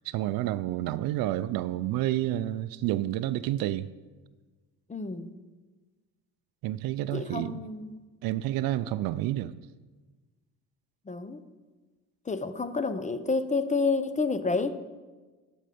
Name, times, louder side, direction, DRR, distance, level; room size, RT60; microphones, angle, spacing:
voice 1, 0.1-3.9 6.6-7.6 8.2-9.6, right 14 dB, 70° right, 0.5 m, -29 dB
voice 2, 4.9-5.3 7.1-8.0 11.1-11.4 12.3-14.7, left 4 dB, 20° left, 0.6 m, -29 dB
12.0 x 5.5 x 5.1 m
supercardioid pair, 70°, 37 cm